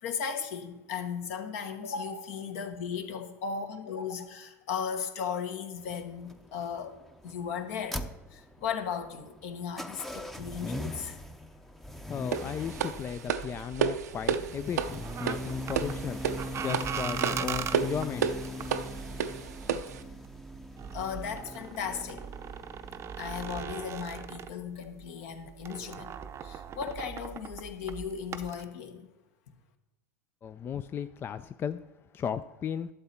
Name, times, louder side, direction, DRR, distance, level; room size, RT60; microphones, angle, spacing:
voice 1, 0.0-7.0 7.2-8.0 8.3-11.2 20.9-22.2 23.2-26.2 26.4-29.1, left 7 dB, 65° left, 6 dB, 1.4 m, -36 dB
sound 1, 5.8-23.6, left 1 dB, 5° left, 0.7 m, -41 dB
voice 2, 12.1-16.2 16.6-18.3 30.4-31.8 32.1-32.9, left 8 dB, 25° left, 12 dB, 0.4 m, -35 dB
sound 2, 12.3-20.0, right 7 dB, 80° right, 0.7 m, -32 dB
sound 3, 12.7-25.1 25.3-28.6, right 8 dB, 30° right, 0.6 m, -40 dB
12.0 x 7.1 x 4.3 m, 1.0 s
hypercardioid pair, 95°, 9 cm